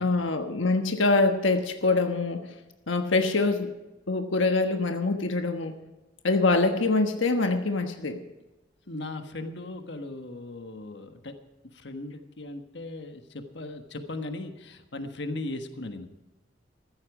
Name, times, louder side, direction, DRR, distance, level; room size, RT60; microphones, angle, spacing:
voice 1, 0.0-2.5 2.9-3.7 4.1-5.8 6.2-8.2, left 3 dB, 90° left, 6 dB, 1.3 m, -24 dB
voice 2, 8.9-11.3 11.7-16.1, left 2 dB, 65° left, 7 dB, 1.4 m, -38 dB
14.5 x 14.5 x 4.9 m, 1.1 s
head